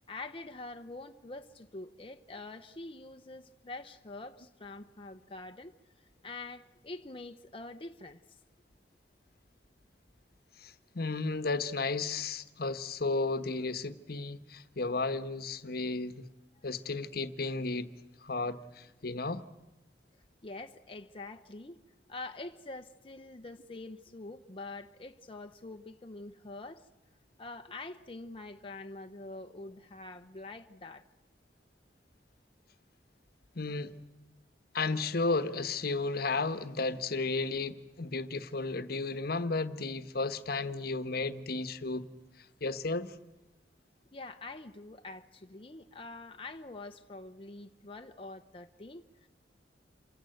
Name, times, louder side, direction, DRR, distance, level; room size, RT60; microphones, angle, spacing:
voice 1, 0.1-5.7 6.2-8.4 16.5-16.7 20.4-21.8 22.1-26.9 27.4-31.0 44.1-49.3, left 2 dB, 30° left, 0.9 m, -45 dB
voice 2, 10.6-16.3 16.6-17.9 18.2-19.4 33.5-34.0 34.7-42.1 42.6-43.1, left 3 dB, 60° left, 1.2 m, -33 dB
28.5 x 25.5 x 7.9 m
head